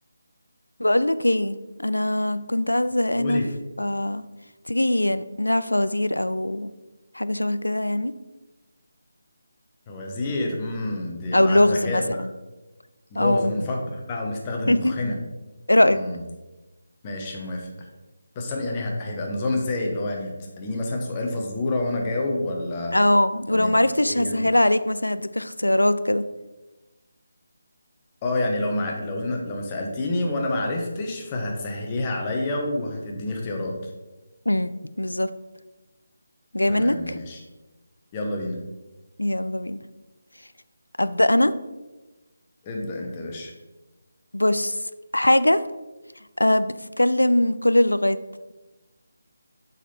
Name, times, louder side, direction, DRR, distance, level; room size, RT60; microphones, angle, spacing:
voice 1, 0.8-1.6 1.8-3.4 3.8-4.2 4.7-6.7 7.2-8.1 11.3-12.3 13.2-13.5 14.7-14.9 15.7-16.0 22.9-26.2 34.5-35.3 36.5-37.2 39.2-39.8 41.0-41.5 44.3-44.7 45.1-45.6 46.4-48.2, left 1 dB, 85° left, 13 dB, 0.4 m, -21 dB
voice 2, 3.2-3.5 9.9-12.3 13.1-15.2 15.9-16.2 17.0-17.7 18.3-22.9 23.5-23.7 24.1-24.4 28.2-33.7 36.7-37.4 38.1-38.6 42.6-43.5, left 2 dB, 20° left, 0 dB, 1.0 m, -28 dB
7.3 x 4.1 x 4.2 m, 1.1 s
figure-of-eight pair, 155°, 0 cm